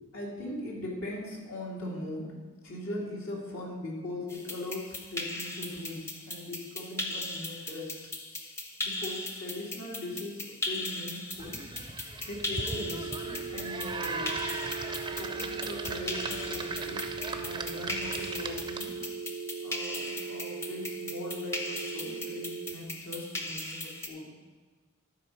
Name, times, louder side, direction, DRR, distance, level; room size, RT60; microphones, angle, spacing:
voice 1, 0.0-2.4 2.6-8.0 8.8-11.6 12.2-14.4 15.2-19.0 19.6-24.3, left 1 dB, 75° left, -3 dB, 2.2 m, -40 dB
sound 1, 4.3-24.1, left 2 dB, 15° left, 0.7 m, -38 dB
sound 2, 11.4-19.1, right 3 dB, 20° right, 0.5 m, -38 dB
sound 3, 12.7-22.7, right 5 dB, 85° right, 0.4 m, -39 dB
11.5 x 4.4 x 5.6 m, 1.4 s
head